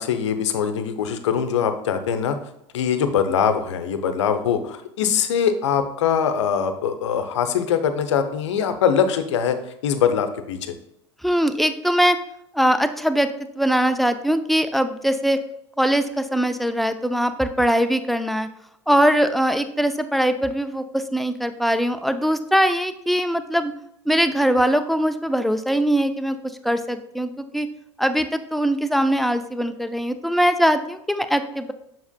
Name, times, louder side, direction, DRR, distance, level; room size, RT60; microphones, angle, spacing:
voice 1, 0.0-2.4 2.7-9.6 9.8-10.7, left 7 dB, 75° left, 9 dB, 0.7 m, -22 dB
voice 2, 11.2-12.2 12.5-13.3 13.6-15.4 15.8-18.5 18.9-23.7 24.1-26.4 26.6-27.7 28.0-31.7, equal, ahead, 9 dB, 0.5 m, -21 dB
7.1 x 6.1 x 2.2 m, 0.78 s
hypercardioid pair, 80°, 15 cm